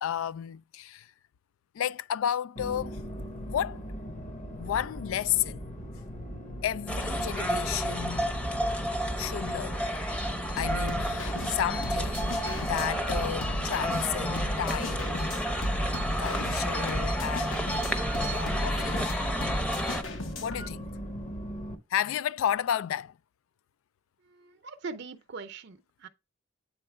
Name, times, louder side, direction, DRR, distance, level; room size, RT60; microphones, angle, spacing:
voice 1, 0.0-1.1 1.7-3.0 3.5-3.8 4.6-5.6 6.6-8.4 9.2-9.8 10.6-15.3 16.2-17.7 18.2-19.0 20.4-20.9 21.9-23.2, left 10 dB, 85° left, 0.3 m, -32 dB
sound 1, 2.6-21.8, equal, 40° left, 1.1 m, -40 dB
sound 2, 6.9-20.0, equal, 5° left, 0.7 m, -31 dB
sound 3, 10.6-20.7, left 1 dB, 65° left, 1.0 m, -36 dB
voice 2, 24.3-26.1, right 4 dB, 60° right, 0.6 m, -42 dB
8.6 x 3.8 x 3.3 m
head